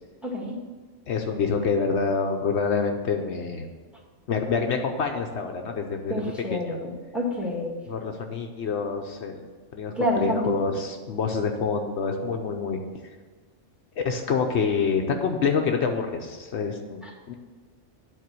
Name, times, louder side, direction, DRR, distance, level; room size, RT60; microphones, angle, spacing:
voice 1, 0.2-0.6 6.1-7.8 10.0-10.5 17.0-17.1, equal, ahead, -1 dB, 1.7 m, -28 dB
voice 2, 1.1-3.7 4.3-6.1 6.5-6.7 7.9-9.5 9.7-12.8 14.0-17.0 17.3-17.4, left 5 dB, 70° left, 3 dB, 1.0 m, -27 dB
9.4 x 4.3 x 7.5 m, 1.4 s
omnidirectional pair, 1.2 m